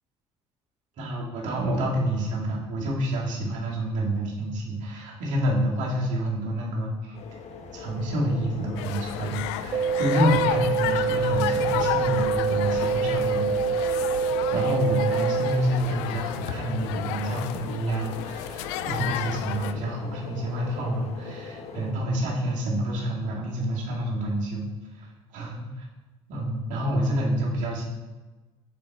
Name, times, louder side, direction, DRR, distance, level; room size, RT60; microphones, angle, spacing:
voice 1, 1.0-7.2 7.7-14.2 14.5-24.7 24.9-25.9 26.3-27.8, right 1 dB, 60° right, -4 dB, 2.3 m, -28 dB
sound 1, 7.1-21.9, left 5 dB, 50° left, 1.0 m, -41 dB
sound 2, 8.8-19.7, left 12 dB, 75° left, 0.4 m, -32 dB
sound 3, 9.7-15.7, right 6 dB, 30° right, 0.5 m, -26 dB
6.8 x 6.1 x 3.6 m, 1.2 s
hypercardioid pair, 60°, 15 cm